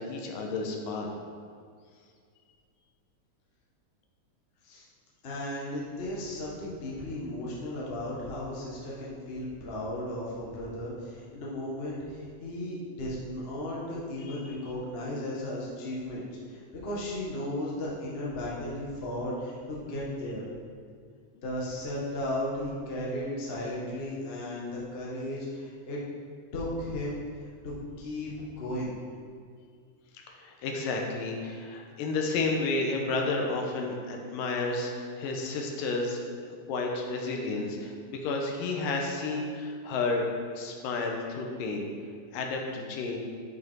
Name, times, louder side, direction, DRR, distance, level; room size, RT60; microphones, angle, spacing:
voice 1, 0.1-1.1 14.2-14.4 30.3-36.2 36.7-40.3 40.6-41.9 42.3-43.2, left 3 dB, 85° left, 1 dB, 2.6 m, -31 dB
voice 2, 5.2-20.5 21.3-26.0 26.5-27.2 27.6-29.0, left 1 dB, 60° left, -5 dB, 0.6 m, -35 dB
9.5 x 5.5 x 4.5 m, 2.1 s
omnidirectional pair, 3.9 m